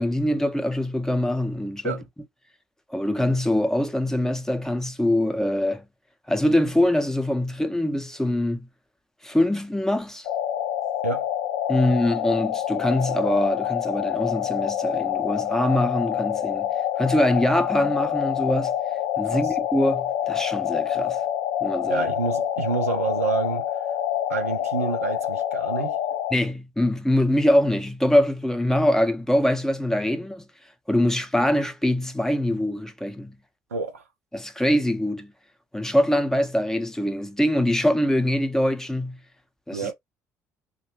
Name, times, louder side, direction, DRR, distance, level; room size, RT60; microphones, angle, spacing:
voice 1, 0.0-2.0 2.9-5.8 6.3-8.7 9.2-10.3 11.7-16.7 17.0-18.7 19.2-21.2 21.6-22.1 26.3-30.4 30.9-33.3 34.3-35.3 35.7-39.2 39.7-39.9, left 1 dB, 5° left, 0.5 m, -23 dB
sound 1, 10.3-26.3, left 10 dB, 65° left, 0.4 m, -27 dB
voice 2, 21.9-23.7 24.3-26.0 33.7-34.0 39.7-39.9, right 4 dB, 85° right, 0.4 m, -28 dB
2.6 x 2.1 x 3.0 m
figure-of-eight pair, 55°, 8 cm